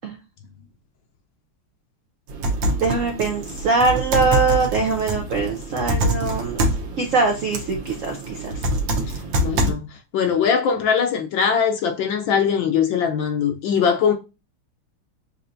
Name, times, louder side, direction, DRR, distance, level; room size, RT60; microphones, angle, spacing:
sound 1, 2.3-9.7, right 1 dB, 70° right, 1.6 m, -25 dB
voice 1, 2.8-6.6 7.0-8.6, right 4 dB, 90° right, 0.6 m, -22 dB
voice 2, 9.1-9.8 10.1-14.1, left 7 dB, 70° left, 1.3 m, -21 dB
6.6 x 2.8 x 2.6 m
omnidirectional pair, 2.3 m